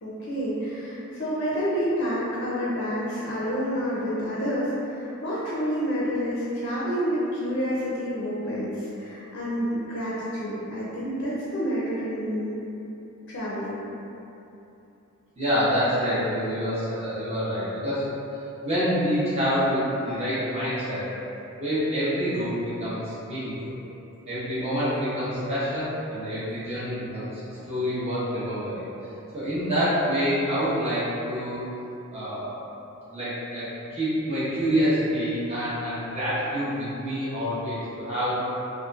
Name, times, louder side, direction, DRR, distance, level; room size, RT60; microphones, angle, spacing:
voice 1, 0.0-12.6 13.3-13.8, equal, 55° left, -8 dB, 0.4 m, -28 dB
voice 2, 15.3-18.1 18.6-21.1 21.6-23.8 24.3-27.4 27.7-28.8 29.3-31.7 32.1-32.5 33.1-38.5, equal, 30° right, -13 dB, 0.9 m, -27 dB
2.8 x 2.4 x 2.3 m, 2.9 s
head